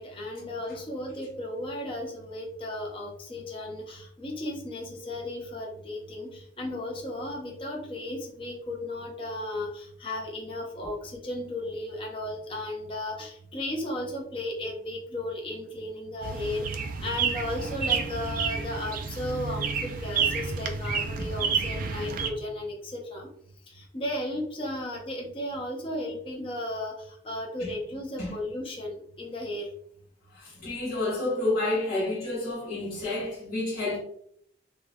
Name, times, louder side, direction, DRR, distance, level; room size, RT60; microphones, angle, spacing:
voice 1, 0.0-23.3 23.7-29.7, left 1 dB, 25° left, 0.5 m, -35 dB
sound 1, 16.2-22.3, right 5 dB, 45° right, 0.3 m, -30 dB
voice 2, 30.3-34.0, left 2 dB, 45° left, 1.1 m, -29 dB
3.6 x 2.1 x 2.6 m
head